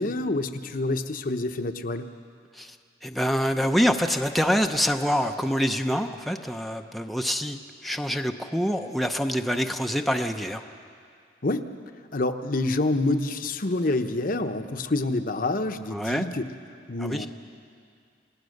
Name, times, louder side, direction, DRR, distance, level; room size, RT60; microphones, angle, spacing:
voice 1, 0.0-2.1 11.4-11.7 12.1-16.5 16.9-17.3, left 2 dB, 50° left, 7 dB, 0.9 m, -27 dB
voice 2, 3.0-10.6 15.9-16.2 17.0-17.3, equal, ahead, 4 dB, 0.7 m, -26 dB
29.0 x 18.5 x 6.6 m, 2.3 s
head